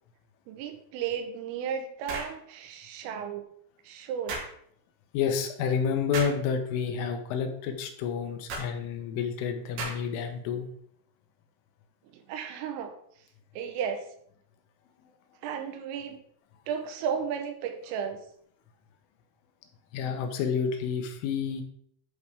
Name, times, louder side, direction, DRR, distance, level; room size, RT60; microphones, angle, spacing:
voice 1, 0.5-3.5 3.9-4.4 12.1-12.9 13.5-14.1 15.4-16.2 16.7-18.2, right 7 dB, 85° right, 6 dB, 3.6 m, -34 dB
sound 1, 2.1-2.4 4.3-4.5 6.1-6.4 8.5-8.7 9.8-10.2, right 3 dB, 60° right, 3.8 m, -35 dB
voice 2, 5.1-10.7 19.9-21.6, left 6 dB, 80° left, 5 dB, 3.4 m, -29 dB
11.0 x 4.8 x 3.5 m, 0.66 s
omnidirectional pair, 5.8 m